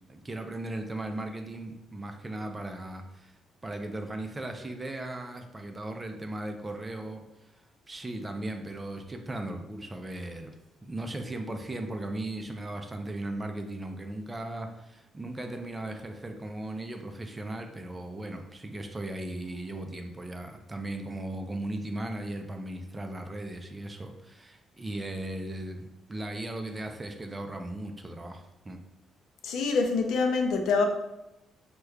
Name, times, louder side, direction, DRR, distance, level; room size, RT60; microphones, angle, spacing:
voice 1, 0.1-7.6 7.9-10.5 10.8-28.8, right 1 dB, 20° right, 5 dB, 0.4 m, -37 dB
voice 2, 29.4-30.9, left 4 dB, 80° left, 5 dB, 0.4 m, -25 dB
4.7 x 2.2 x 2.3 m, 0.93 s
cardioid pair, 90°, 0 cm